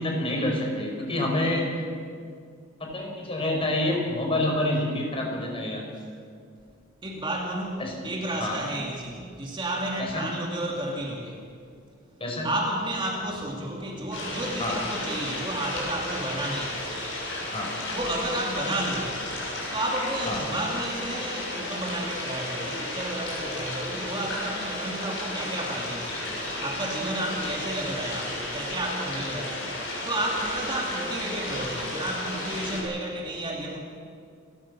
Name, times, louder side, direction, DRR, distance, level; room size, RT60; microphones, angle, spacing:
voice 1, 0.0-1.8 2.8-5.9 7.8-8.0 8.4-8.6 10.0-10.3 12.2-12.5 14.6-14.8 17.5-17.7 20.3-20.4, left 1 dB, 30° left, 0 dB, 5.1 m, -27 dB
voice 2, 7.0-11.4 12.4-16.9 17.9-19.3 19.7-33.8, right 1 dB, 25° right, -1 dB, 2.6 m, -32 dB
sound 1, 14.1-32.8, left 1 dB, 70° left, 7.4 m, -33 dB
29.5 x 13.0 x 7.3 m, 2.2 s
head